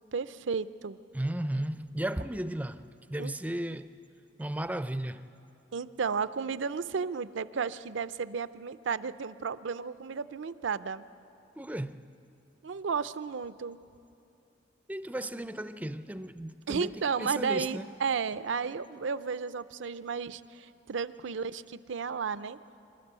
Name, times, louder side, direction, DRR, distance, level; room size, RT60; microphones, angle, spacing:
voice 1, 0.1-1.0 3.2-3.3 5.7-11.1 12.6-13.8 16.7-22.6, right 5 dB, 70° right, 0.5 m, -33 dB
voice 2, 1.1-3.9 4.4-5.2 11.6-12.0 14.9-17.9, right 1 dB, 10° right, 0.4 m, -35 dB
26.5 x 13.0 x 8.1 m
head